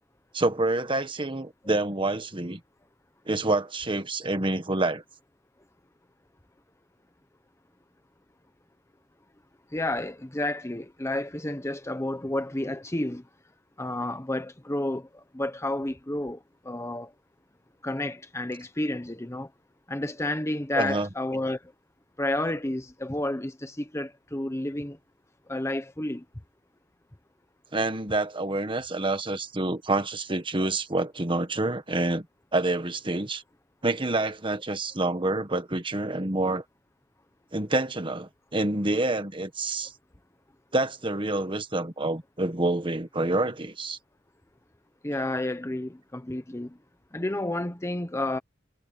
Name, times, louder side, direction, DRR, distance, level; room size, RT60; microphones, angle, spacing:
voice 1, 0.3-2.6 3.3-5.0 20.7-21.1 27.7-32.2 32.5-33.4 33.8-36.6 37.5-39.9 40.7-44.0, right 2 dB, 25° right, 1.6 m, -27 dB
voice 2, 9.7-13.2 13.8-17.1 17.8-19.5 19.9-21.6 22.2-25.0 25.5-26.2 45.0-46.8 47.1-48.4, left 1 dB, 15° left, 1.0 m, -31 dB
head